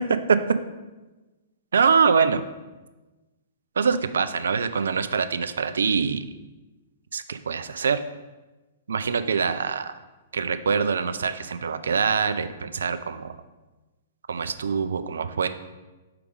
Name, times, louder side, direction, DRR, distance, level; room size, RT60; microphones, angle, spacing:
voice 1, 1.7-2.4 3.8-6.3 7.1-8.0 8.9-9.9 10.3-13.4 14.3-15.5, right 6 dB, 65° right, 12 dB, 0.4 m, -24 dB
4.9 x 4.6 x 5.0 m, 1.1 s
figure-of-eight pair, 110°, 0 cm